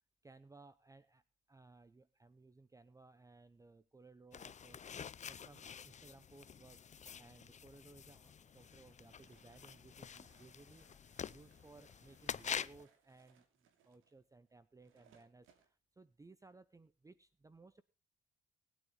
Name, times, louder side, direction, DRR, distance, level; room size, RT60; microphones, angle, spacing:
voice 1, 0.2-1.2 1.5-5.0 5.3-6.8 7.2-10.9 11.3-17.8, right 3 dB, 15° right, 16 dB, 0.7 m, -61 dB
sound 1, 4.3-12.8, left 7 dB, 35° left, 0.6 m, -47 dB
sound 2, 8.1-15.7, right 7 dB, 90° right, 2.8 m, -72 dB
20.0 x 9.4 x 3.8 m, 0.30 s
cardioid pair, 90°, 20 cm